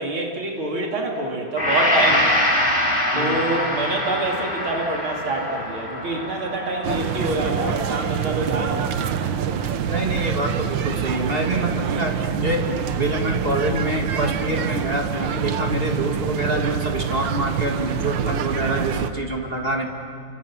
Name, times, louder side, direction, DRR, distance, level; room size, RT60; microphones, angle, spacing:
voice 1, 0.0-2.4 3.1-8.9, right 2 dB, 90° right, 0 dB, 3.7 m, -26 dB
Gong, 1.6-9.6, left 1 dB, 25° left, 4.1 m, -25 dB
voice 2, 3.1-3.5 9.9-12.6 13.0-19.9, right 1 dB, 30° right, 1 dB, 2.7 m, -26 dB
sound 1, 6.8-19.1, right 8 dB, 70° right, 1.7 m, -26 dB
29.5 x 25.5 x 7.4 m, 2.2 s
omnidirectional pair, 2.2 m